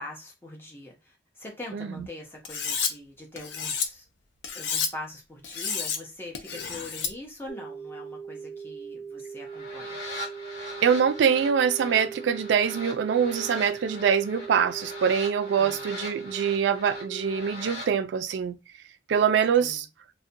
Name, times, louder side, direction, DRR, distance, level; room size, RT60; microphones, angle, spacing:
voice 1, 0.0-4.1 4.5-10.0 15.6-15.9 19.6-19.8, left 1 dB, 15° left, 0.6 m, -42 dB
voice 2, 1.7-2.1 10.8-18.6 19.1-19.9, right 7 dB, 90° right, 0.3 m, -24 dB
Cutlery silverware, 2.4-2.9 3.4-3.9 4.4-4.9 5.4-6.0 6.3-7.1, left 6 dB, 90° left, 0.4 m, -30 dB
sound 1, 7.5-17.5, right 6 dB, 15° right, 0.9 m, -40 dB
sound 2, 9.4-17.9, left 1 dB, 70° left, 1.2 m, -41 dB
2.5 x 2.1 x 2.6 m
head